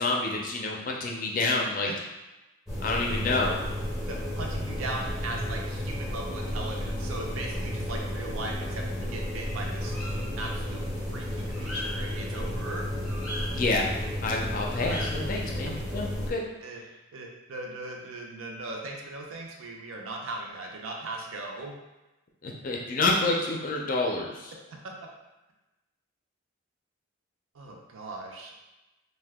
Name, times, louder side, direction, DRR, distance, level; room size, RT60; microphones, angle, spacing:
voice 1, 0.0-1.9 2.8-3.6 13.5-13.9 14.2-16.4 22.4-24.5, left 2 dB, 40° left, -1 dB, 0.4 m, -28 dB
sound 1, 2.7-16.3, left 1 dB, 5° right, 0.6 m, -32 dB
voice 2, 4.1-9.9 10.4-12.8 15.6-15.7 16.6-16.8 17.1-21.8 24.8-24.9 27.5-28.7, right 2 dB, 75° right, 0 dB, 0.5 m, -38 dB
2.7 x 2.2 x 3.4 m, 1.0 s
head